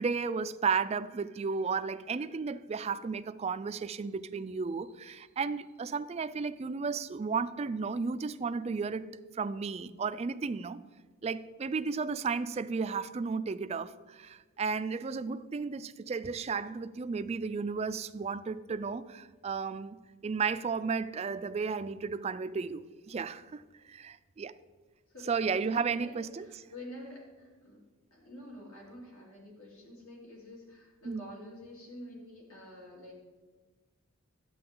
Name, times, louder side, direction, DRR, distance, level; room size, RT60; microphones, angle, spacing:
voice 1, 0.0-9.1 9.3-10.8 11.2-20.0 20.2-23.6 23.9-24.5 25.3-26.6 31.1-31.3, right 5 dB, 30° right, 13 dB, 0.3 m, -33 dB
voice 2, 25.1-27.8 28.1-33.2, left 1 dB, 75° left, -3 dB, 3.5 m, -48 dB
11.5 x 8.5 x 3.8 m, 1.3 s
head